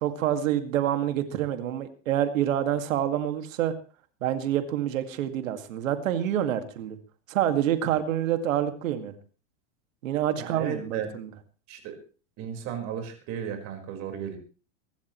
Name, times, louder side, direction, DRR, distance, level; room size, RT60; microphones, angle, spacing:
voice 1, 0.0-3.7 4.2-7.0 7.3-9.2 10.0-11.3, right 11 dB, 85° right, 8 dB, 2.2 m, -27 dB
voice 2, 10.4-11.1 11.7-12.0 12.4-14.4, right 8 dB, 40° right, 5 dB, 4.8 m, -34 dB
24.0 x 13.0 x 3.2 m, 0.36 s
supercardioid pair, 150°, 38 cm